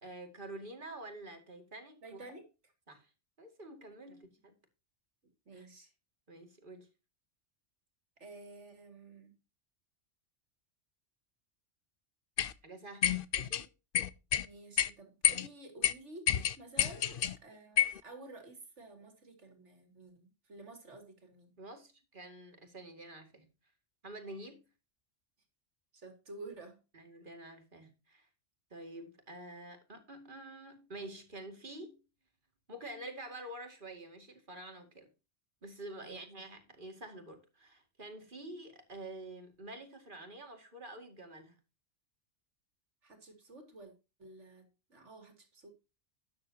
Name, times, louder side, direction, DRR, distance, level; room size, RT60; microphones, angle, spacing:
voice 1, 0.0-2.3 2.9-3.1 3.4-4.6 5.5-5.7 6.3-6.9 12.6-13.7 21.6-23.5 24.0-24.6 26.9-28.3 28.7-32.0 32.7-35.1 35.6-41.6, right 1 dB, 45° right, 2.4 m, -48 dB
voice 2, 2.0-2.5 5.5-5.9 8.2-9.3 14.4-21.5 25.9-26.8 36.0-36.2 43.0-43.9 44.2-45.7, right 2 dB, 80° right, 2.9 m, -51 dB
sound 1, 12.4-12.5 13.0-13.6 13.9-14.5 14.8-14.9 15.2-15.5 15.8-15.9 16.3-17.3 17.8-18.0, left 9 dB, 55° left, 0.8 m, -29 dB
12.5 x 9.5 x 2.8 m
omnidirectional pair, 1.2 m